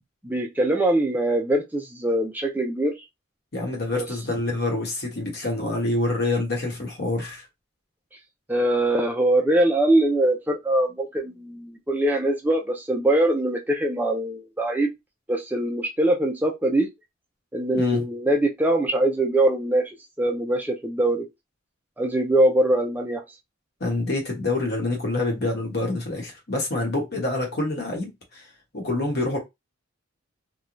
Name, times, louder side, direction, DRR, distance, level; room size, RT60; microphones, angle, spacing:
voice 1, 0.2-2.9 3.9-4.1 8.5-14.9 15.3-16.9 17.5-19.9 20.2-21.3 22.0-23.2, right 1 dB, 10° right, 0.4 m, -22 dB
voice 2, 3.5-7.4 17.7-18.0 23.8-28.4 28.7-29.4, left 2 dB, 55° left, 1.1 m, -26 dB
3.0 x 2.2 x 2.5 m
head